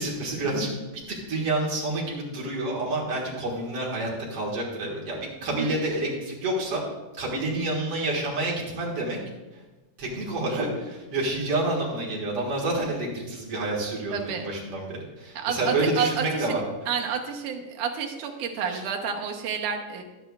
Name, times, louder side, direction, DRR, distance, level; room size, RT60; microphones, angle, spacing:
voice 1, 0.0-6.8 7.1-9.2 9.5-9.6 10.0-16.6 18.7-18.8, right 2 dB, 55° right, -3 dB, 2.4 m, -29 dB
voice 2, 14.1-14.5 15.4-16.6 16.9-20.0, right 7 dB, 80° right, 2 dB, 2.4 m, -30 dB
12.0 x 10.5 x 2.3 m, 1.2 s
omnidirectional pair, 3.6 m